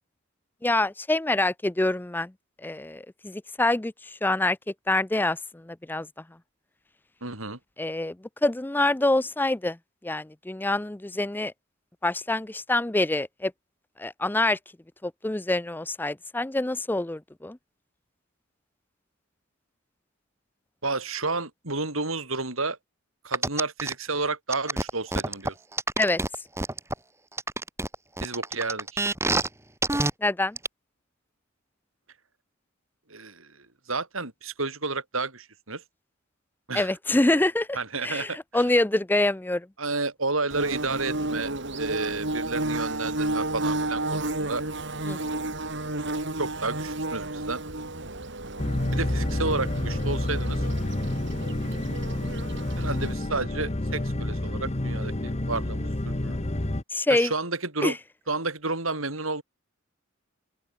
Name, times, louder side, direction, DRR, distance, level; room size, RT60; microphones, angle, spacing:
voice 1, 0.6-2.3 2.6-3.9 4.2-4.6 4.9-5.4 5.7-6.1 7.8-8.1 8.4-9.8 10.0-11.5 12.0-13.5 14.0-14.6 15.0-17.6 26.0-26.2 30.2-30.6 36.7-37.7 38.0-39.7 45.1-45.2 56.9-57.3 57.8-57.9, left 2 dB, 10° left, 0.5 m, -25 dB
voice 2, 7.2-7.6 20.8-22.8 23.2-25.5 28.2-29.0 33.1-33.5 33.9-35.8 36.7-36.9 37.7-38.6 39.8-41.5 41.8-44.6 46.4-47.6 48.9-50.6 52.8-56.4 57.1-58.0 58.3-59.4, right 3 dB, 80° right, 7.0 m, -31 dB
sound 1, 23.3-23.9 24.5-26.9 27.4-29.5 29.8-30.1 30.6-30.7, right 2 dB, 15° right, 4.6 m, -26 dB
Bird / Buzz, 40.5-53.1, right 2 dB, 60° right, 5.2 m, -32 dB
sound 2, 48.6-56.8, left 1 dB, 30° left, 1.1 m, -29 dB
open air
head